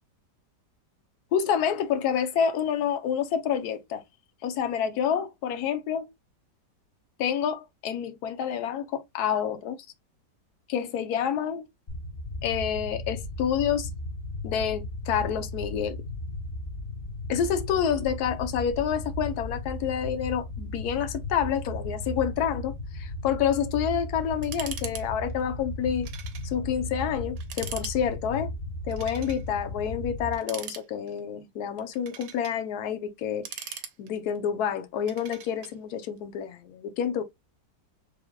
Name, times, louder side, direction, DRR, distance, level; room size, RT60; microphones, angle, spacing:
voice 1, 1.3-4.0 4.4-6.1 7.2-9.8 10.7-11.6 12.4-13.9 14.4-16.0 17.3-26.1 26.4-28.5 28.9-37.2, left 8 dB, 70° left, 1.2 m, -28 dB
sound 1, 11.9-30.4, left 1 dB, 50° left, 0.6 m, -36 dB
sound 2, 24.4-25.0 25.3-25.4 26.0-26.5 26.9-27.0 27.4-28.0 28.9-29.4 30.3-31.2 31.8-32.6 33.2-34.4 35.1-35.7, right 9 dB, 90° right, 1.4 m, -40 dB
4.6 x 3.3 x 2.2 m
omnidirectional pair, 1.9 m